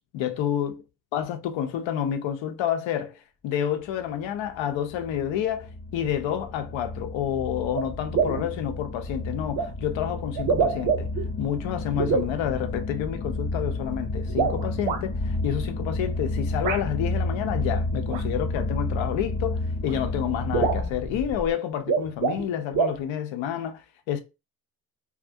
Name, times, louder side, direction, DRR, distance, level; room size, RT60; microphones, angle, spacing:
voice 1, 0.1-0.8 1.1-11.1 11.4-24.2, left 10 dB, 75° left, 0.6 m, -29 dB
sound 1, 4.0-21.5, left 2 dB, 25° left, 0.3 m, -31 dB
sound 2, 7.7-7.9 8.1-8.5 9.6-9.7 10.4-11.3 12.0-12.3 14.3-15.0 16.6-16.8 18.1-18.2 19.4-19.5 19.9-20.0 20.2-20.3 20.5-20.9 21.7-22.5 22.7-23.0, right 5 dB, 70° right, 0.8 m, -25 dB
2.3 x 2.0 x 2.6 m
supercardioid pair, 65°, 47 cm